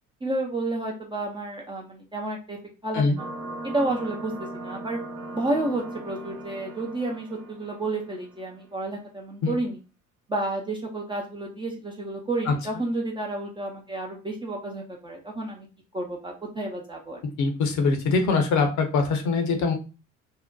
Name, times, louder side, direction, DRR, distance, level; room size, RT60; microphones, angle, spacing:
voice 1, 0.2-3.3 3.6-5.0 5.3-9.8 10.3-15.7 15.9-17.2, right 2 dB, 10° right, -1 dB, 0.4 m, -31 dB
sound 1, 3.2-8.4, right 2 dB, 40° right, 0.9 m, -38 dB
voice 2, 17.4-19.7, left 4 dB, 45° left, 5 dB, 0.7 m, -23 dB
2.6 x 2.1 x 2.3 m, 0.32 s
hypercardioid pair, 60°, 41 cm